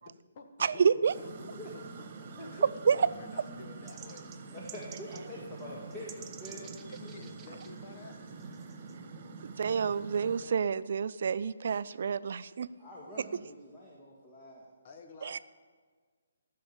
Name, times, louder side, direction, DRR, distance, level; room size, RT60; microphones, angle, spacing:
voice 1, 0.0-1.8 2.4-2.6 2.9-4.2 5.6-5.7 6.5-8.2 8.4-8.5 14.8-15.4, left 4 dB, 40° left, 1.5 m, -50 dB
voice 2, 0.6-1.1 2.8-3.1 9.4-12.7 15.2-15.4, right 6 dB, 55° right, 0.4 m, -28 dB
sound 1, 1.1-10.4, right 4 dB, 40° right, 1.4 m, -46 dB
voice 3, 2.4-2.7 4.5-6.7 7.0-7.1 12.8-14.7, left 1 dB, 20° left, 1.9 m, -45 dB
sound 2, 3.9-5.3 5.6-5.7 5.9-7.7 8.4-8.9, right 8 dB, 15° right, 0.6 m, -50 dB
14.5 x 6.6 x 7.2 m
figure-of-eight pair, 140°, 0 cm